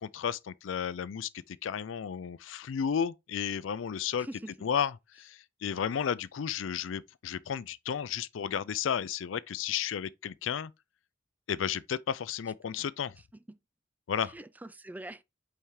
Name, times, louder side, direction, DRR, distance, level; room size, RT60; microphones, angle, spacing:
voice 1, 0.0-4.3 4.6-10.7 11.5-13.2 14.1-14.3, left 8 dB, 90° left, 0.4 m, -33 dB
voice 2, 4.2-4.7 13.2-13.6 14.2-15.2, right 1 dB, 10° right, 0.4 m, -45 dB
5.6 x 4.5 x 4.8 m
head